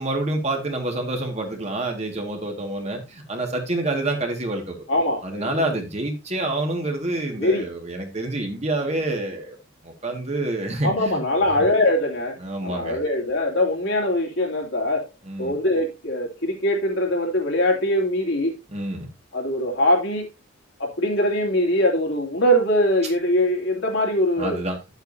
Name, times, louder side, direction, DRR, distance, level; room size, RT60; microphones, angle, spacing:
voice 1, 0.0-4.8 5.2-9.6 9.8-11.2 11.6-11.7 12.4-13.0 15.2-15.6 18.7-19.1 24.4-24.8, right 2 dB, 30° right, 1.9 m, -27 dB
voice 2, 4.9-5.7 7.4-7.7 10.8-15.1 15.4-18.6 19.3-20.3 20.8-24.6, left 1 dB, 65° left, 2.8 m, -22 dB
10.5 x 8.2 x 2.7 m
head